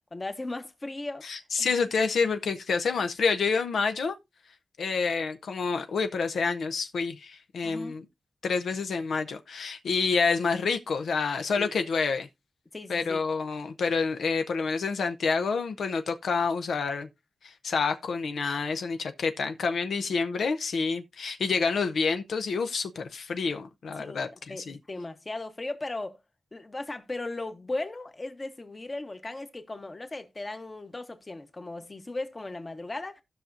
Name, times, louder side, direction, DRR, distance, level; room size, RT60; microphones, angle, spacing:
voice 1, 0.1-1.2 1.6-1.7 7.6-7.9 11.5-11.7 12.7-13.2 24.0-26.2 26.5-33.2, left 2 dB, 30° left, 1.1 m, -37 dB
voice 2, 1.2-4.1 4.8-8.0 8.4-12.3 12.9-17.1 17.4-24.8, left 5 dB, 85° left, 0.6 m, -28 dB
16.5 x 5.7 x 2.6 m
wide cardioid pair, 100°, 0 cm